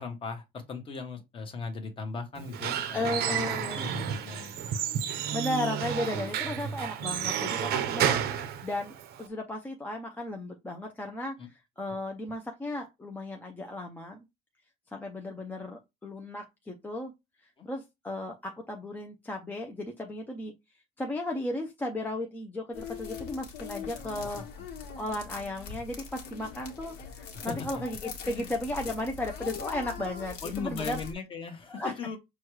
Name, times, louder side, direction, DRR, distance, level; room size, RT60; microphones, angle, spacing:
voice 1, 0.0-4.7 11.4-11.5 17.6-17.7 23.8-24.4 27.3-27.8 28.2-28.5 30.4-32.2, left 5 dB, 30° left, 1.0 m, -39 dB
Squeak / Wood, 2.4-9.3, right 9 dB, 60° right, 0.6 m, -31 dB
voice 2, 2.9-3.9 5.3-8.9 9.2-14.2 14.9-17.1 17.6-20.5 21.0-24.4 25.0-31.0 31.7-32.2, left 1 dB, 10° left, 0.5 m, -35 dB
sound 1, 22.7-31.1, left 6 dB, 60° left, 1.4 m, -41 dB
6.2 x 2.3 x 3.1 m
cardioid pair, 165°, 19 cm